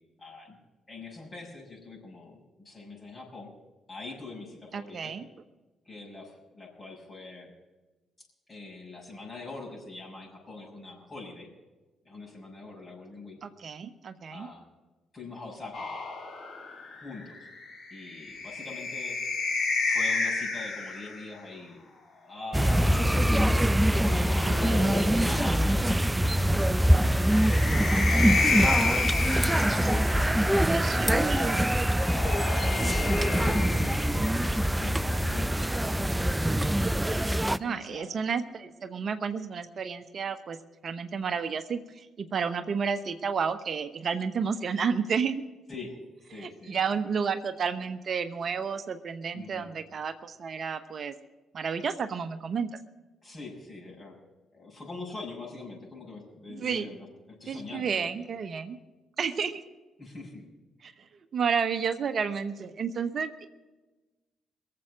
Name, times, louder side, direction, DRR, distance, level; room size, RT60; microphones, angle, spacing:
voice 1, 0.2-0.6 0.9-3.5 3.9-5.1 5.8-7.5 8.5-11.5 12.0-13.4 14.3-14.7 15.1-15.9 17.0-17.5 17.9-19.2 19.8-21.8 22.2-23.1 23.9-27.1 27.9-28.7 29.7-30.7 31.0-31.7 32.1-32.4 33.1-34.0 34.4-36.2 37.6-38.1 45.7-46.0 46.3-46.9 49.3-49.7 53.2-54.2 54.5-58.1 60.0-60.5, left 3 dB, 35° left, -2 dB, 6.6 m, -43 dB
voice 2, 4.7-5.2 13.4-14.5 24.4-24.9 30.7-31.6 37.6-40.6 40.8-45.4 46.3-51.1 51.5-52.7 56.5-56.9 57.5-58.8 59.2-59.6 60.8-61.1 61.3-63.5, right 6 dB, 55° right, 10 dB, 0.9 m, -31 dB
sound 1, 15.7-21.3 22.6-25.6 27.0-30.5 31.7-34.6, left 3 dB, 50° left, 3.0 m, -32 dB
sound 2, 22.5-37.6, equal, 10° right, 0.5 m, -24 dB
22.5 x 7.7 x 6.2 m, 1.2 s
hypercardioid pair, 45°, 0 cm